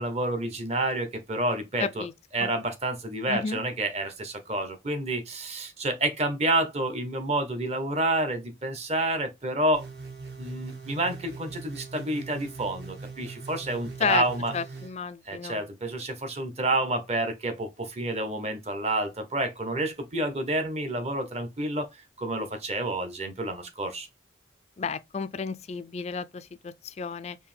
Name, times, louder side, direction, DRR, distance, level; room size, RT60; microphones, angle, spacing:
voice 1, 0.0-2.0 2.3-9.8 10.4-14.5 15.3-24.1, right 2 dB, 35° right, 0.8 m, -29 dB
voice 2, 1.8-2.1 2.4-2.5 3.3-3.6 14.0-14.2 14.5-15.6 24.8-27.4, left 5 dB, 35° left, 0.3 m, -31 dB
sound 1, 9.7-14.9, right 4 dB, 60° right, 1.3 m, -41 dB
4.8 x 2.7 x 3.3 m
head